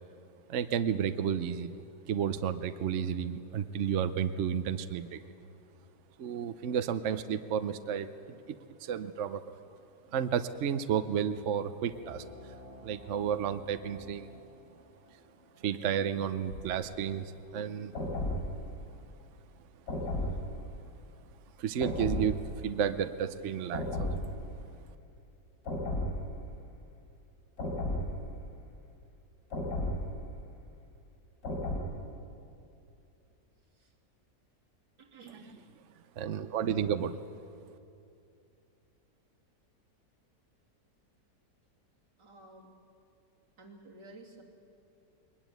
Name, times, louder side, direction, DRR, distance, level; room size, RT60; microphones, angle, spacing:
voice 1, 0.5-1.7 2.1-5.2 6.2-9.5 10.1-12.5 12.8-14.4 15.6-17.9 21.6-24.3 35.3-35.4 36.2-37.2, right 8 dB, 55° right, 11 dB, 0.9 m, -32 dB
sound 1, 11.8-17.0, left 1 dB, 30° left, 2.5 m, -53 dB
sound 2, 16.5-16.8 17.9-18.7 19.9-20.7 21.8-22.6 23.7-24.5 25.6-26.4 27.6-28.4 29.5-30.3 31.4-31.8, left 1 dB, 55° left, 4.7 m, -34 dB
voice 2, 35.0-35.7 42.2-42.8 43.6-44.4, right 2 dB, 80° right, -2 dB, 3.5 m, -52 dB
21.5 x 20.0 x 9.2 m, 2.6 s
omnidirectional pair, 1.9 m